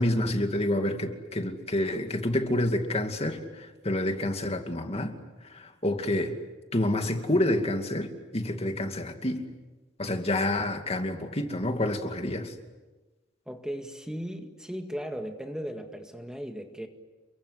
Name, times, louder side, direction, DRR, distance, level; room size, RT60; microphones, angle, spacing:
voice 1, 0.0-5.1 5.5-6.4 6.7-9.5 10.0-12.5, left 1 dB, 35° left, 5 dB, 2.5 m, -28 dB
voice 2, 13.5-16.9, equal, 5° right, 4 dB, 1.9 m, -37 dB
30.0 x 24.0 x 8.3 m, 1.2 s
head